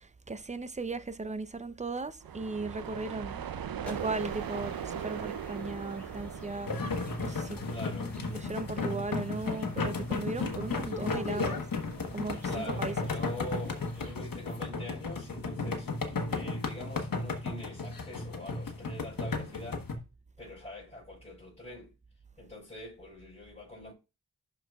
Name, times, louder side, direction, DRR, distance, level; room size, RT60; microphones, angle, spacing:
voice 1, 0.0-3.5 3.8-7.6 8.2-11.6 12.1-13.0, right 3 dB, 20° right, 0.5 m, -37 dB
sound 1, 2.2-8.0, right 8 dB, 90° right, 0.6 m, -39 dB
sound 2, 3.8-14.1, right 1 dB, 5° left, 3.9 m, -49 dB
sound 3, 6.7-20.0, left 3 dB, 75° left, 1.2 m, -34 dB
voice 2, 7.6-8.2 12.4-19.8 20.4-21.9 22.4-23.9, left 1 dB, 20° left, 4.7 m, -44 dB
11.0 x 4.6 x 2.4 m
wide cardioid pair, 70°, 34 cm